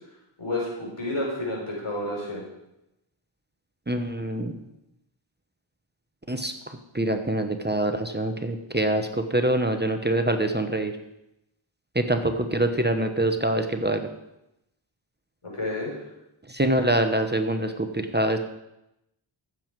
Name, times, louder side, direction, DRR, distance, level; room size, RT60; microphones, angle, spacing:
voice 1, 0.4-2.4 15.4-15.9, left 1 dB, 80° left, -3 dB, 4.3 m, -30 dB
voice 2, 3.9-4.6 6.3-10.9 11.9-14.1 16.5-18.4, right 1 dB, 20° right, 7 dB, 1.0 m, -25 dB
14.5 x 7.5 x 4.7 m, 0.88 s
wide cardioid pair, 40°, 49 cm